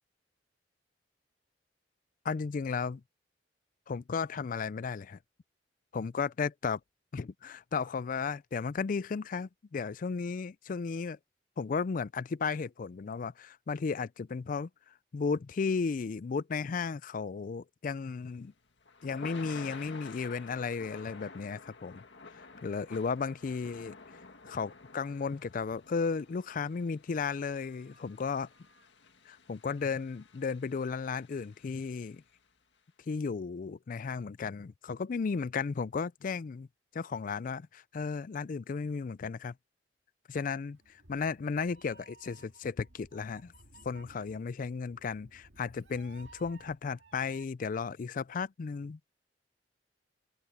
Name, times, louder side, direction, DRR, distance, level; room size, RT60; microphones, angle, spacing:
voice 1, 2.2-3.0 3.9-5.2 5.9-6.8 7.1-11.2 11.6-18.5 19.0-22.0 22.3-23.9 24.4-28.5 29.3-32.2 33.1-36.7 36.9-39.5 40.3-40.8 41.1-43.5 43.8-49.0, left 5 dB, 50° left, 0.4 m, -34 dB
Thunder / Rain, 18.1-32.3, left 4 dB, 85° left, 1.9 m, -51 dB
Meow, 40.7-47.4, right 2 dB, 90° right, 2.2 m, -58 dB
open air
head